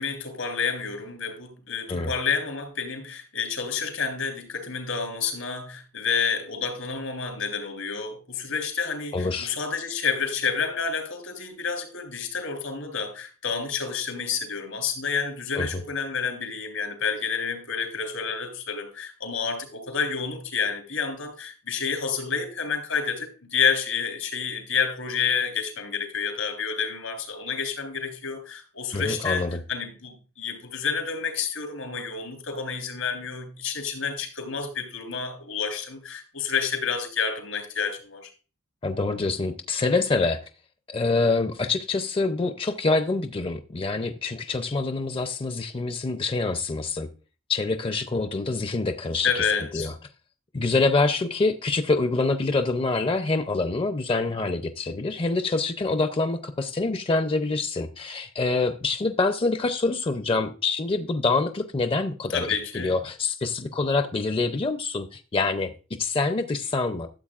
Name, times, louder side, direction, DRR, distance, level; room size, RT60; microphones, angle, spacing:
voice 1, 0.0-29.4 29.7-38.3 49.2-49.9 62.3-62.9, left 6 dB, 85° left, 3.4 m, -29 dB
voice 2, 9.1-9.5 15.6-15.7 28.9-29.6 38.8-40.4 40.9-47.1 47.5-49.4 49.7-49.9 50.5-62.5 62.7-65.7 66.0-67.1, left 3 dB, 25° left, 0.5 m, -26 dB
12.5 x 7.8 x 2.4 m
head